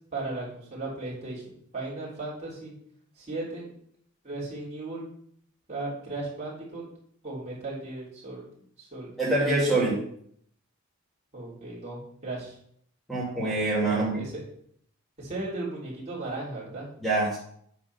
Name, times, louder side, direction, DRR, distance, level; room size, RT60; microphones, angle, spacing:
voice 1, 0.1-2.7 3.1-3.7 4.2-5.1 5.7-6.9 7.2-8.4 8.8-9.1 11.3-12.6 13.8-14.4 15.2-16.9, right 2 dB, 30° right, -6 dB, 3.4 m, -36 dB
voice 2, 9.2-10.0 13.1-14.2 17.0-17.4, right 2 dB, ahead, -6 dB, 2.5 m, -25 dB
8.9 x 3.7 x 5.9 m, 0.66 s
head